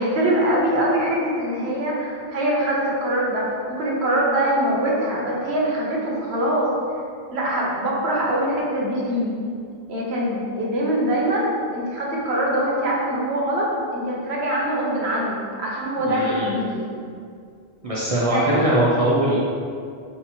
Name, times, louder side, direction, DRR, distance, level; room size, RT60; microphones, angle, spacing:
voice 1, 0.0-6.7 7.3-9.4 9.9-16.9 18.3-18.6, right 1 dB, 80° right, -3 dB, 1.1 m, -23 dB
voice 2, 16.1-16.5 17.8-19.4, right 1 dB, 40° right, -7 dB, 0.6 m, -21 dB
4.1 x 2.9 x 4.2 m, 2.3 s
omnidirectional pair, 1.1 m